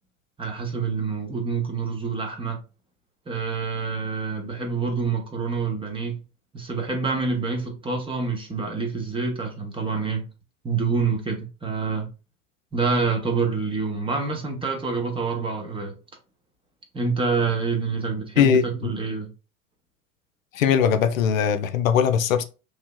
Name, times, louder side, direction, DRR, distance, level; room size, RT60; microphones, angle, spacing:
voice 1, 0.4-2.6 3.3-6.2 6.5-10.2 10.6-12.1 12.7-16.0 16.9-19.3, right 4 dB, 15° right, 0.8 m, -27 dB
voice 2, 18.4-18.9 20.5-22.4, left 8 dB, 75° left, 0.5 m, -20 dB
3.2 x 2.7 x 2.2 m
figure-of-eight pair, 85°, 41 cm